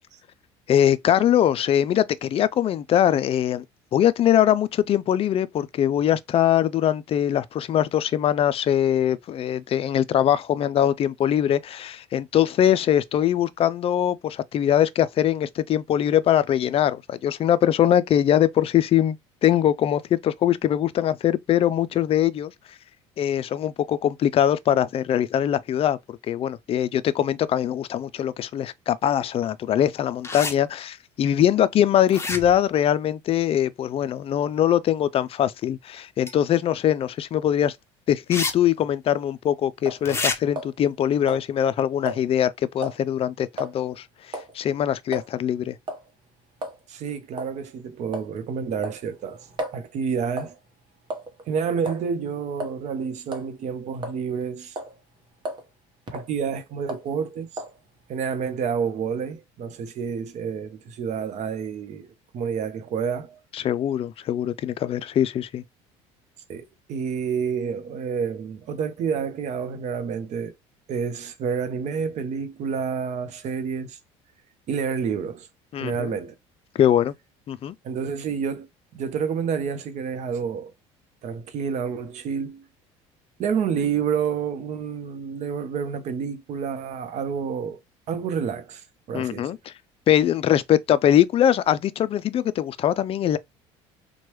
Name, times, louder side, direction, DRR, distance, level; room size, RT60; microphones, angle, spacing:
voice 1, 0.7-3.6 3.9-22.5 23.2-37.8 38.1-45.8 63.5-65.6 75.7-76.1 76.7-77.1 77.5-77.7 89.1-89.7 90.1-93.4, left 10 dB, 40° left, 0.4 m, -22 dB
sound 1, 30.2-30.5 32.1-32.7 36.3-36.4 38.3-38.5 38.8-38.9 40.0-40.4, left 3 dB, 20° left, 0.7 m, -27 dB
sound 2, 39.8-40.1 40.6-41.0 41.3-41.5 42.1-42.2 42.8-43.0 43.6-43.7 44.3-44.5 45.1-45.3 45.9-46.1 46.6-46.8 47.4-47.5 48.1-48.4 48.8-49.8 50.4-50.6 51.1-51.4 51.9-52.1 52.6-52.8 53.3-53.5 54.0-54.4 54.8-55.0 55.4-55.7 56.1-56.3 56.9-57.1 57.6-57.8, right 1 dB, 35° right, 1.0 m, -34 dB
voice 2, 46.9-49.5 49.7-50.6 51.5-54.8 56.1-57.5 58.1-63.4 66.5-70.5 70.9-74.0 74.7-75.5 75.8-76.3 77.8-78.7 78.9-80.7 81.2-82.6 83.4-87.8 88.1-89.6, right 6 dB, 55° right, 0.7 m, -29 dB
3.0 x 2.2 x 3.0 m
supercardioid pair, 85°, 14 cm